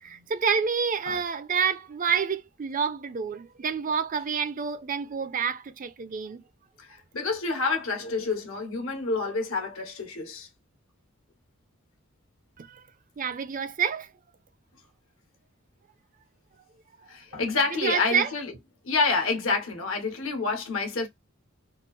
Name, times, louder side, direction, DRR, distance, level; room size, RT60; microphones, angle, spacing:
voice 1, 0.0-6.4 12.6-12.8 13.2-14.1 17.7-18.3, right 6 dB, 40° right, 0.5 m, -28 dB
voice 2, 6.8-10.5 17.1-18.5 18.8-21.1, left 4 dB, 75° left, 1.3 m, -28 dB
3.6 x 2.0 x 4.0 m
head